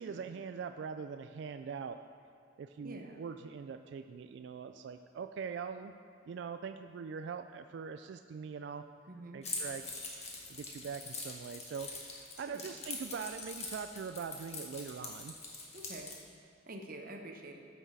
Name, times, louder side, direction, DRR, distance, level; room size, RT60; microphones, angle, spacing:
voice 1, 0.0-2.0 2.6-5.9 6.3-8.8 9.3-9.9 10.5-11.9 12.4-15.4, right 6 dB, 60° right, 8 dB, 0.3 m, -42 dB
voice 2, 2.8-3.3 9.1-9.4 12.5-12.6 15.7-16.1 16.7-17.6, right 1 dB, 45° right, 3 dB, 0.9 m, -47 dB
Keys jangling, 9.4-16.2, left 3 dB, 35° left, 1.3 m, -43 dB
14.0 x 5.9 x 4.1 m, 2.4 s
head